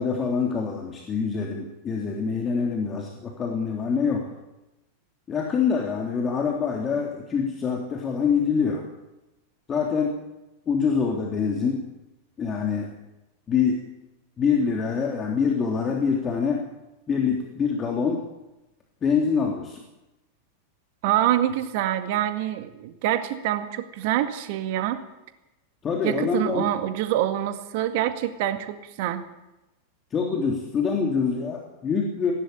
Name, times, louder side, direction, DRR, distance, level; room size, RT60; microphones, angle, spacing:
voice 1, 0.0-4.2 5.3-8.8 9.7-10.2 10.7-11.8 12.4-12.9 13.5-13.8 14.4-16.6 17.1-18.2 19.0-19.8 25.8-26.7 30.1-32.3, left 6 dB, 25° left, 0 dB, 3.5 m, -25 dB
voice 2, 21.0-25.0 26.0-29.2, right 12 dB, 50° right, 9 dB, 1.9 m, -26 dB
19.5 x 17.0 x 8.7 m, 0.97 s
figure-of-eight pair, 90°, 0 cm